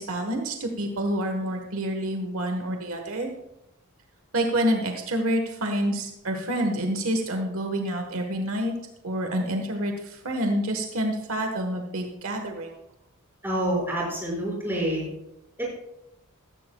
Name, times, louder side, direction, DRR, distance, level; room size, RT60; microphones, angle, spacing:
voice 1, 0.0-3.3 4.3-8.7 9.0-12.8, right 1 dB, 70° right, 4 dB, 1.3 m, -28 dB
voice 2, 13.4-15.1, right 1 dB, 10° right, -4 dB, 5.5 m, -27 dB
16.0 x 14.5 x 2.3 m, 0.86 s
head